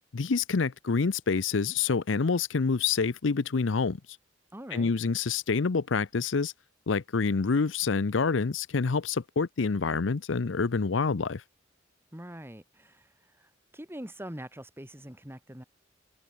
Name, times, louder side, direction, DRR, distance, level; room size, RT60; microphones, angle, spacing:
voice 1, 0.1-4.0 4.7-6.5 6.9-11.4, left 4 dB, 70° left, 0.6 m, -27 dB
voice 2, 4.5-4.9 12.1-15.6, right 1 dB, 10° right, 3.7 m, -43 dB
head